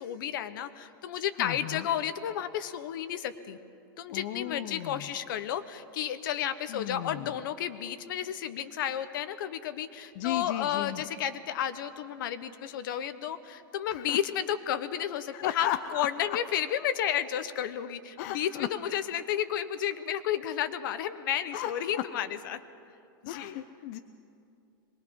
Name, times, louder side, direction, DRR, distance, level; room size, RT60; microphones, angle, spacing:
voice 1, 0.0-3.6 4.0-22.6 23.2-23.6, left 10 dB, 65° left, 12 dB, 1.0 m, -32 dB
voice 2, 1.4-1.9 4.1-5.1 6.7-7.3 10.2-11.0 13.9-14.2 15.3-16.1 18.2-18.7 21.5-22.0 23.3-24.0, left 13 dB, 45° left, 9 dB, 0.6 m, -35 dB
24.0 x 20.5 x 5.4 m, 2.5 s
supercardioid pair, 160°, 12 cm